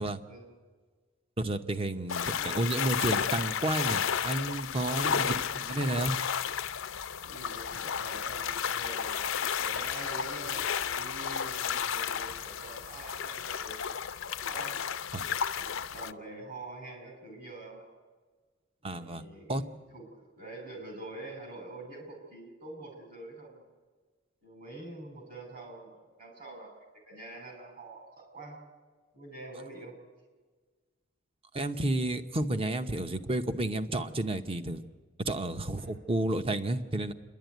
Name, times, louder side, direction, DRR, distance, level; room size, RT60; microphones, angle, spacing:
voice 1, 1.4-6.2 15.1-15.2 18.8-19.2 19.5-19.6 31.5-34.8 35.2-37.1, right 1 dB, 25° right, 9 dB, 0.8 m, -31 dB
sound 1, 2.1-16.1, left 7 dB, 70° left, 0.5 m, -32 dB
voice 2, 5.1-5.5 7.2-9.3 9.6-13.8 14.2-14.9 15.5-17.9 18.9-19.6 19.9-20.0 20.4-23.6 24.4-28.6 29.1-30.0 35.8-36.0, right 2 dB, 45° right, 2 dB, 6.0 m, -45 dB
27.5 x 11.5 x 9.3 m, 1.4 s
head